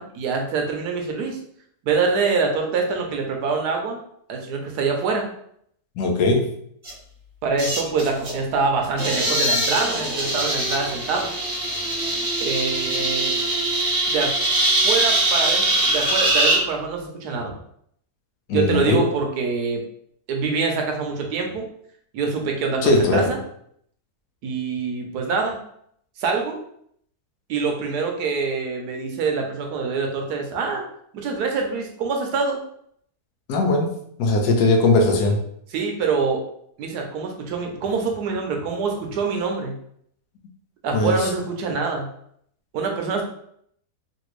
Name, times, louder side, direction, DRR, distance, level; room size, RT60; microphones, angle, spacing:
voice 1, 0.0-1.4 1.8-4.0 4.3-5.3 7.4-11.3 12.4-13.3 14.1-14.3 14.6-17.5 18.5-19.8 20.3-21.7 22.1-23.4 24.4-25.6 26.2-26.6 27.5-30.8 31.1-32.6 35.7-36.4 36.8-39.7 40.8-42.1 42.7-43.2, right 4 dB, 90° right, 2 dB, 1.2 m, -25 dB
voice 2, 6.0-6.5 18.5-19.1 22.8-23.3 33.5-35.4 40.9-41.3, left 2 dB, 90° left, 3 dB, 1.2 m, -19 dB
sound 1, 6.8-6.9 7.6-8.4 8.8-16.6, right 1 dB, 55° right, 1.4 m, -22 dB
3.3 x 2.6 x 3.0 m, 0.68 s
omnidirectional pair, 1.7 m